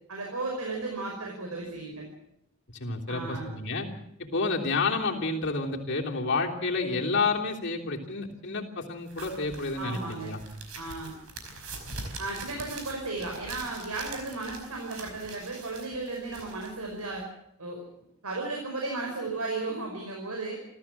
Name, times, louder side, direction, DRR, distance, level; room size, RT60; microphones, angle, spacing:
voice 1, 0.1-2.1 3.1-3.5 9.8-10.3 10.7-11.1 12.2-17.2 17.6-17.8 18.2-20.6, right 3 dB, 90° right, 0 dB, 5.4 m, -35 dB
voice 2, 2.7-3.9 4.3-10.4, left 3 dB, 55° left, 0 dB, 3.3 m, -29 dB
sound 1, 9.1-17.2, right 3 dB, 70° right, 5.0 m, -43 dB
28.5 x 14.0 x 7.5 m, 0.80 s
head